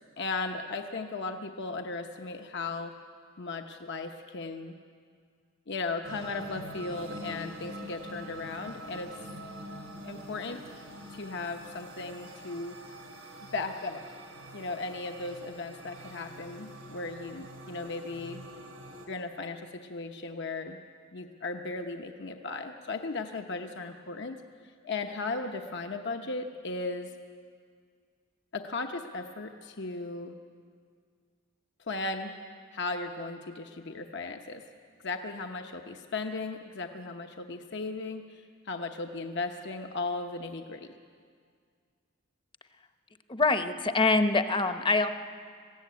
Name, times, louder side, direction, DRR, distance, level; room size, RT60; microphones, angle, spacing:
voice 1, 0.2-2.9 3.4-4.7 5.7-9.1 10.0-10.6 11.1-12.7 13.4-14.0 14.5-18.4 19.1-20.8 21.1-24.4 24.8-27.1 28.5-30.4 31.8-32.3 32.7-34.6 35.0-40.9, left 3 dB, 60° left, 5 dB, 1.0 m, -36 dB
sound 1, 6.0-19.1, right 1 dB, 85° right, 3.8 m, -45 dB
voice 2, 43.3-45.1, left 3 dB, 25° left, 9 dB, 0.9 m, -25 dB
20.5 x 15.5 x 9.4 m, 2.1 s
head